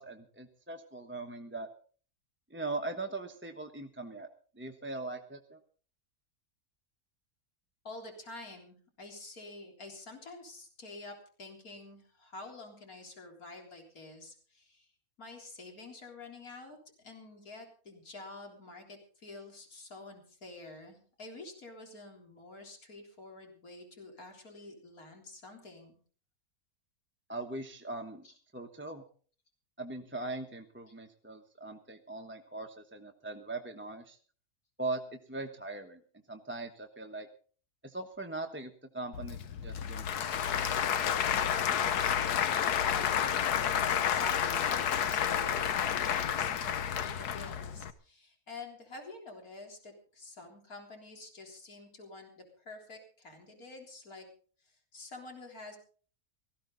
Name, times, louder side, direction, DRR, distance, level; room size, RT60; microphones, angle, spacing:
voice 1, 0.0-1.7 2.5-4.3 4.6-5.6 27.3-28.3 28.5-29.0 29.8-34.2 34.8-35.0 35.3-36.0 36.3-37.3 37.8-40.7, right 2 dB, 10° right, 4 dB, 1.1 m, -40 dB
voice 2, 7.8-14.9 15.2-25.9 28.2-28.4 42.8-43.3 44.1-54.3 54.6-55.8, left 2 dB, 65° left, 2 dB, 4.2 m, -48 dB
Applause / Crowd, 39.1-47.9, left 8 dB, 85° left, 1.5 m, -30 dB
18.5 x 15.0 x 4.0 m, 0.43 s
omnidirectional pair, 1.6 m